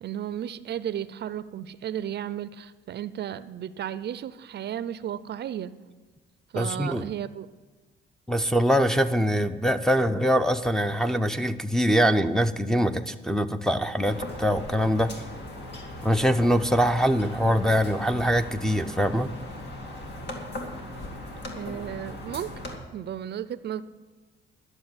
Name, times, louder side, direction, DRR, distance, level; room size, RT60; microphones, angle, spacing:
voice 1, 0.0-5.8 6.5-7.5 21.5-22.7 22.9-23.8, right 10 dB, 55° right, 15 dB, 0.5 m, -34 dB
voice 2, 6.5-7.1 8.3-15.1 16.0-19.3, equal, ahead, 5 dB, 0.6 m, -23 dB
sound 1, 14.0-22.8, left 1 dB, 60° left, 2.4 m, -38 dB
12.0 x 6.7 x 9.6 m, 1.3 s
cardioid pair, 90°, 20 cm